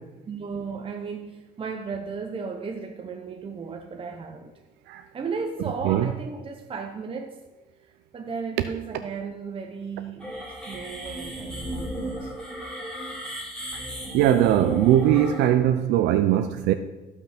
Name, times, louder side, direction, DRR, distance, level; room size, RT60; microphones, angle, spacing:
voice 1, 0.3-4.5 5.1-7.4 7.8-10.3 10.7-12.3, right 5 dB, 30° right, 3 dB, 1.0 m, -35 dB
sound 1, 10.2-15.5, right 1 dB, 5° left, 4.5 m, -34 dB
voice 2, 14.1-16.7, right 12 dB, 85° right, 9 dB, 0.6 m, -20 dB
14.5 x 6.0 x 5.9 m, 1.1 s
cardioid pair, 110°, 17 cm